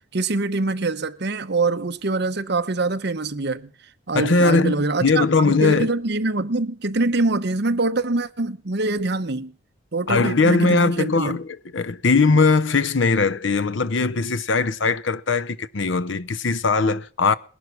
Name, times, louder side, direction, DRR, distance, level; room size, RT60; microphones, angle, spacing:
voice 1, 0.0-3.7 4.1-9.5 9.9-11.4, right 2 dB, 55° right, 1.0 m, -24 dB
voice 2, 4.1-5.9 10.1-17.3, left 4 dB, 65° left, 0.8 m, -20 dB
20.0 x 11.5 x 6.0 m
head